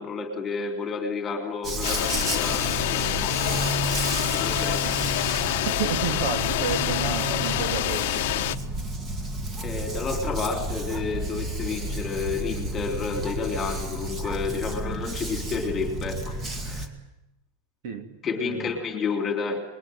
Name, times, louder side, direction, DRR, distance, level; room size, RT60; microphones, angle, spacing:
voice 1, 0.0-3.6 4.2-4.9 9.6-16.3 16.7-16.9 18.2-19.6, left 5 dB, 15° left, 5 dB, 3.4 m, -30 dB
Dog, 1.6-16.9, right 1 dB, 15° right, 2.1 m, -31 dB
sound 1, 1.8-8.6, left 16 dB, 50° left, 1.1 m, -27 dB
voice 2, 5.6-8.6 17.8-18.7, right 7 dB, 45° right, 7 dB, 3.0 m, -32 dB
28.0 x 22.0 x 9.4 m, 0.92 s
supercardioid pair, 175°, 0 cm